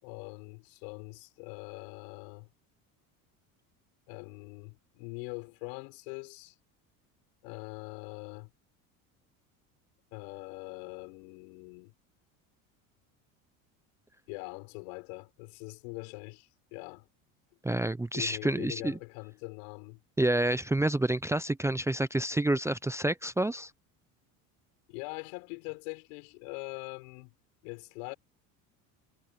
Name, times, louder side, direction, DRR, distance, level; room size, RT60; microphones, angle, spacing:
voice 1, 0.0-2.5 4.1-6.5 7.4-8.5 10.1-11.9 14.3-17.1 18.1-20.0 24.9-27.3 27.6-28.1, left 34 dB, 75° left, 6.8 m, -43 dB
voice 2, 17.6-19.0 20.2-23.7, right 1 dB, 5° right, 0.7 m, -28 dB
supercardioid pair, 90°, 40 cm